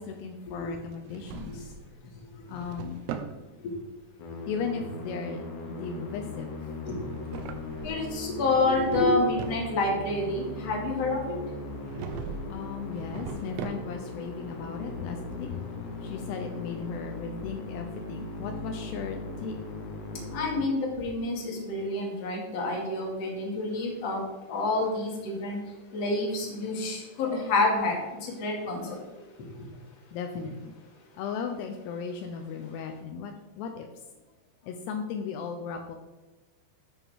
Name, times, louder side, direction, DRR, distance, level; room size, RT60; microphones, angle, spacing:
voice 1, 0.0-1.7 2.5-3.0 4.5-6.5 12.5-15.5 16.0-19.6 30.1-30.7 31.1-33.9 34.6-36.0, left 6 dB, 80° left, 5 dB, 2.8 m, -36 dB
Drawer open or close, 0.9-1.9 2.3-3.4 7.0-8.2 8.5-9.7 11.8-12.5 12.9-14.1, right 7 dB, 80° right, 2.7 m, -39 dB
Musical instrument, 4.2-21.3, left 2 dB, 65° left, 3.3 m, -39 dB
voice 2, 7.8-11.4 20.3-24.2 24.5-25.6 25.9-28.0 28.2-29.0, left 2 dB, 45° left, -1 dB, 2.8 m, -28 dB
11.0 x 8.6 x 3.6 m, 1.1 s
omnidirectional pair, 4.9 m